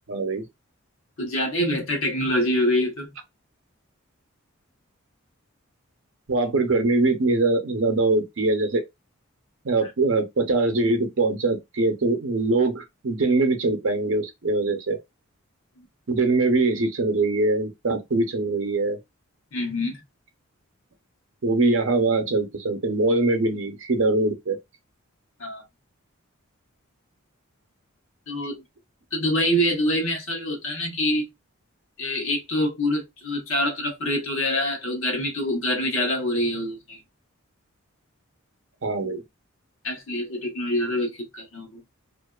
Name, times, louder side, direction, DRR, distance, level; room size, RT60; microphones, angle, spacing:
voice 1, 0.1-0.4 6.3-8.8 9.6-15.0 16.1-19.0 21.4-24.6 38.8-39.2, right 2 dB, 60° right, 0.6 m, -22 dB
voice 2, 1.2-3.1 19.5-20.0 25.4-25.6 28.3-28.6 29.1-31.3 32.0-37.0 39.8-41.8, left 1 dB, 65° left, 1.0 m, -25 dB
2.5 x 2.2 x 2.2 m
head